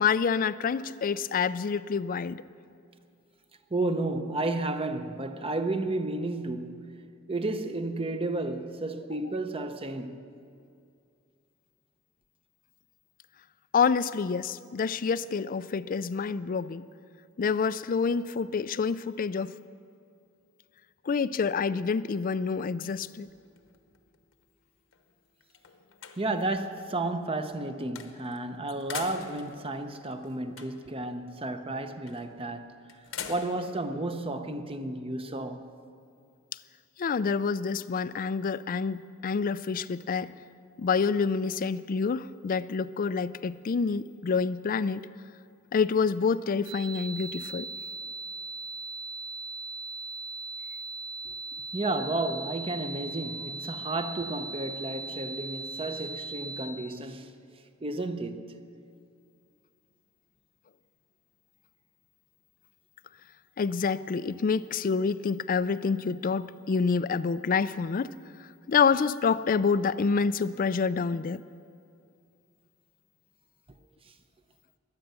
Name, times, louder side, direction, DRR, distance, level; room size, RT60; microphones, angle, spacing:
voice 1, 0.0-2.4 13.7-16.8 17.4-19.5 21.1-23.3 37.0-40.3 40.8-45.0 45.7-47.7 63.6-68.1 68.7-71.4, left 5 dB, 40° left, 0.4 m, -27 dB
voice 2, 3.7-7.0 7.3-10.2 26.2-32.7 33.3-35.7 51.7-57.3 57.8-58.5, right 2 dB, 25° right, 0.7 m, -32 dB
sound 1, 22.9-24.4 24.9-25.0 25.4-26.6 28.0-28.4 28.7-31.0 32.1-32.4 32.9-33.8, left 7 dB, 65° left, 1.1 m, -43 dB
sound 2, 46.6-56.6, right 3 dB, 60° right, 3.0 m, -39 dB
22.5 x 9.0 x 6.8 m
head